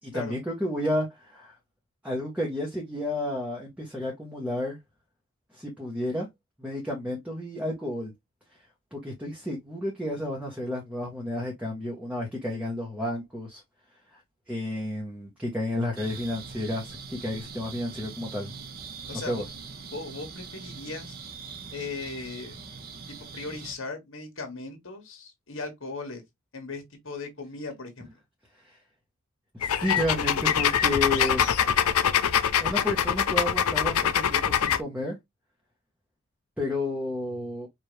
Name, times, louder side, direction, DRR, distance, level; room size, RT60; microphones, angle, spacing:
voice 1, 0.0-1.5 2.0-4.8 5.5-6.3 6.6-8.1 8.9-13.6 14.1-14.2 14.5-18.5 19.1-19.4 28.6-28.8 29.5-31.7 32.6-35.2 36.6-37.7, left 1 dB, 5° right, 0.9 m, -31 dB
sound 1, 16.0-23.7, right 5 dB, 45° right, 0.7 m, -42 dB
voice 2, 19.1-19.4 19.9-21.2 21.7-22.6 23.3-26.2 26.5-28.1, left 3 dB, 60° left, 1.5 m, -38 dB
sound 2, 29.6-34.8, left 8 dB, 85° left, 0.5 m, -24 dB
4.8 x 2.5 x 3.2 m
head